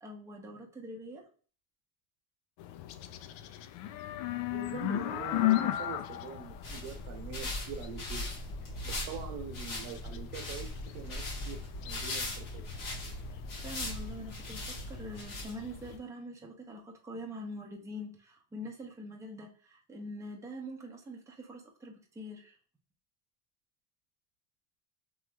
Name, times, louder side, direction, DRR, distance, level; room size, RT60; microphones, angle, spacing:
voice 1, 0.0-1.3 13.3-22.6, equal, 5° right, 0 dB, 0.6 m, -44 dB
sound 1, 2.6-16.0, left 14 dB, 85° left, 0.5 m, -37 dB
voice 2, 4.5-8.3 8.8-10.7 10.9-11.6 11.9-12.7, right 7 dB, 85° right, 5 dB, 1.0 m, -44 dB
sound 2, 6.4-15.9, left 1 dB, 50° left, 1.4 m, -40 dB
3.1 x 3.0 x 2.2 m, 0.39 s
cardioid pair, 130°, 43 cm